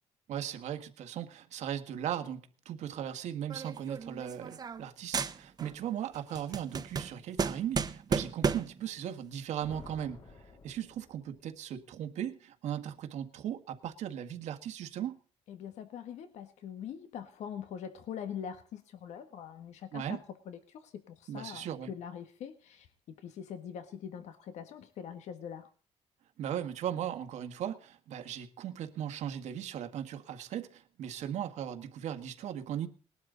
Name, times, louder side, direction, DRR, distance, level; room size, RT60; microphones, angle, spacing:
voice 1, 0.3-10.2 10.6-15.2 19.9-20.2 21.3-21.9 26.4-32.9, right 10 dB, 90° right, 1.8 m, -38 dB
sound 1, 3.5-4.9 5.1-5.8 6.1-8.8, right 5 dB, 35° right, 1.1 m, -33 dB
sound 2, 9.6-11.6, left 3 dB, 50° left, 3.0 m, -52 dB
voice 2, 15.5-22.9 23.2-25.7, left 8 dB, 85° left, 1.6 m, -43 dB
20.0 x 12.0 x 4.0 m
cardioid pair, 145°, 12 cm